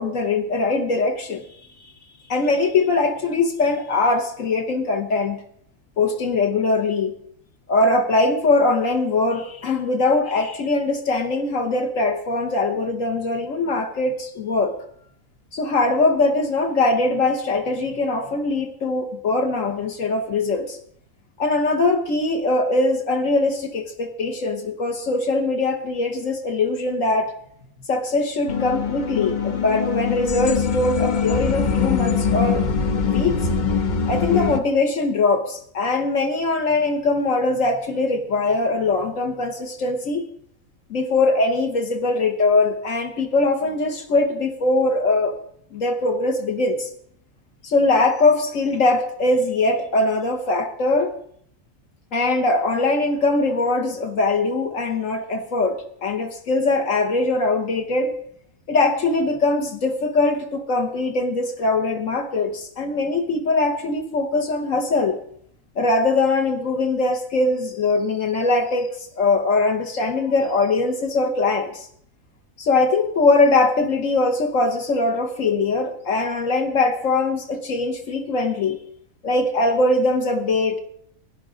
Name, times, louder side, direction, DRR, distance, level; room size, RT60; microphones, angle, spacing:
voice 1, 0.0-1.4 2.3-5.4 6.0-7.2 7.7-14.7 15.5-20.8 21.4-27.3 27.9-32.6 33.0-33.4 34.1-40.2 40.9-45.3 45.7-46.9 47.6-51.1 52.1-58.1 58.7-65.2 65.8-68.9 69.2-71.9 72.6-78.8 79.2-80.8, left 3 dB, 70° left, 5 dB, 1.5 m, -21 dB
sound 1, 28.5-34.6, left 6 dB, 40° left, 0.7 m, -22 dB
17.5 x 11.0 x 3.8 m, 0.66 s
omnidirectional pair, 1.5 m